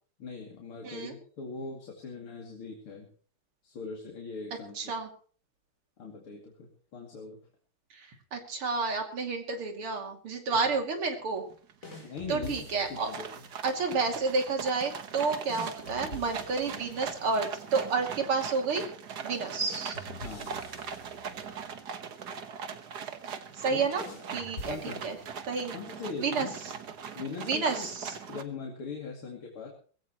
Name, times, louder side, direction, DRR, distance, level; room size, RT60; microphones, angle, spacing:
voice 1, 0.2-3.1 3.6-4.9 6.0-7.4 12.0-13.3 20.2-20.6 23.7-23.9 24.7-25.0 25.7-26.6 27.2-27.9 28.3-29.7, left 5 dB, 75° left, -1 dB, 3.4 m, -41 dB
voice 2, 0.8-1.2 4.8-5.1 7.9-11.4 12.3-13.1 13.6-18.9 19.2-19.9 23.6-24.0 24.3-25.2 25.5-25.8 26.2-26.5 27.4-28.2, right 4 dB, 80° right, 3 dB, 3.5 m, -30 dB
sound 1, 11.1-11.2 11.5-11.9 12.3-28.4, right 6 dB, 50° right, 1.7 m, -41 dB
sound 2, 11.8-13.2 15.5-17.5 19.6-21.8 24.0-25.6, left 2 dB, 35° left, 5.2 m, -46 dB
20.5 x 16.5 x 3.1 m, 0.43 s
omnidirectional pair, 2.4 m